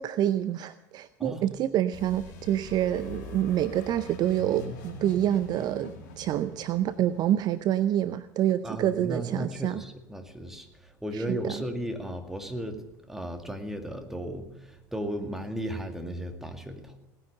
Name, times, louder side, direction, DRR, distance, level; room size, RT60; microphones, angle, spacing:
voice 1, 0.0-9.8 11.1-11.6, right 11 dB, 40° right, 14 dB, 0.6 m, -27 dB
voice 2, 1.2-1.6 8.6-12.8 13.1-17.0, equal, 5° right, 4 dB, 2.2 m, -35 dB
sound 1, 1.9-8.5, left 4 dB, 65° left, 2.6 m, -44 dB
18.0 x 9.8 x 6.7 m, 0.97 s
figure-of-eight pair, 70°, 10 cm